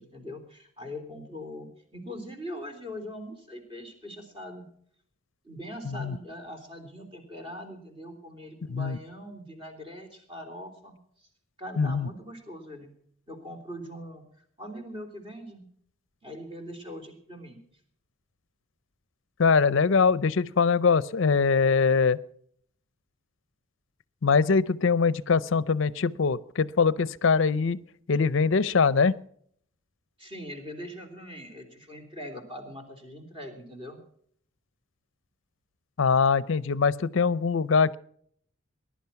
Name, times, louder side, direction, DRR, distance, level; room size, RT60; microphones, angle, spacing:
voice 1, 0.0-4.7 5.4-11.3 11.6-12.9 13.3-14.2 14.6-15.6 16.2-17.6 30.2-34.0, equal, 25° right, 4 dB, 3.4 m, -41 dB
voice 2, 5.9-6.2 8.7-9.0 11.8-12.1 19.4-22.2 24.2-27.8 28.1-29.1 36.0-38.0, left 5 dB, 65° left, 18 dB, 0.5 m, -23 dB
20.0 x 11.5 x 5.8 m, 0.64 s
head